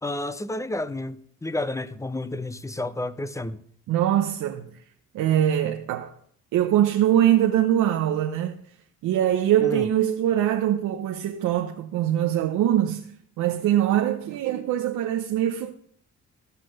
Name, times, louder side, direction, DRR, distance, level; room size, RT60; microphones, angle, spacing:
voice 1, 0.0-3.6 9.6-9.9, left 2 dB, 10° left, 0.6 m, -31 dB
voice 2, 3.9-4.8 5.1-6.1 6.5-8.6 9.0-15.7, right 11 dB, 85° right, 0.8 m, -23 dB
15.0 x 5.9 x 6.5 m
cardioid pair, 90°, 30 cm